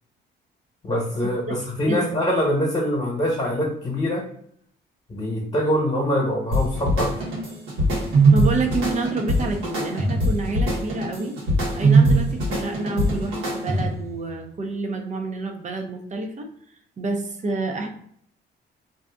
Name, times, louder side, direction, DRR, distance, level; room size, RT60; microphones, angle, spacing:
voice 1, 0.8-4.3 5.1-7.1, equal, 30° left, -3 dB, 1.2 m, -24 dB
voice 2, 1.9-2.2 8.3-11.4 11.7-16.5 17.0-17.9, right 3 dB, 35° right, 4 dB, 0.7 m, -28 dB
sound 1, 6.5-14.1, right 2 dB, 85° right, 1.3 m, -21 dB
2.7 x 2.4 x 3.5 m, 0.65 s
cardioid pair, 90°, 20 cm